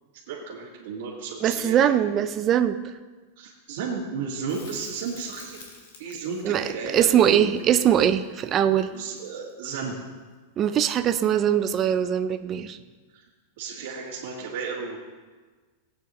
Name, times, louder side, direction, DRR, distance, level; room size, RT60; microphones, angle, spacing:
voice 1, 0.3-1.8 3.4-5.6 6.0-7.8 8.9-9.9 13.1-13.2 13.6-15.0, right 5 dB, 50° right, -8 dB, 1.8 m, -33 dB
voice 2, 1.4-2.8 6.4-8.9 10.6-12.8, right 9 dB, 20° right, 9 dB, 0.3 m, -22 dB
Crackle, 4.5-9.6 12.3-12.4, left 4 dB, 80° left, 2.3 m, -50 dB
17.5 x 8.6 x 3.1 m, 1.4 s
supercardioid pair, 180°, 0 cm